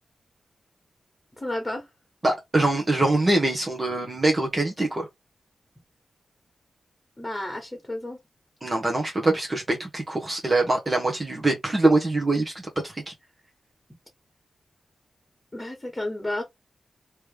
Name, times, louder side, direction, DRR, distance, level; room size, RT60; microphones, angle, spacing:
voice 1, 1.4-1.9 7.2-8.2 15.5-16.4, left 1 dB, 15° left, 1.7 m, -31 dB
voice 2, 2.2-5.1 8.6-12.5 12.8-13.1, right 2 dB, 30° right, 1.1 m, -23 dB
3.3 x 3.1 x 3.3 m
wide cardioid pair, 85°, 0 cm